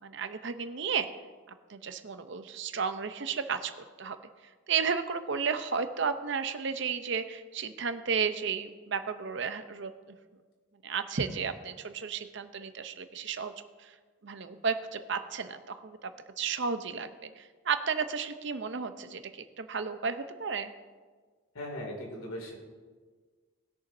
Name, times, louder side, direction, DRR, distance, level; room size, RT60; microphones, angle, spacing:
voice 1, 0.0-1.1 1.7-3.7 4.0-4.2 4.7-9.9 10.8-13.5 13.8-13.9 14.2-16.1 16.4-20.7, right 6 dB, 55° right, 10 dB, 0.6 m, -33 dB
voice 2, 21.5-22.5, left 1 dB, 85° left, 0 dB, 2.5 m, -38 dB
20.0 x 6.9 x 2.6 m, 1.5 s
head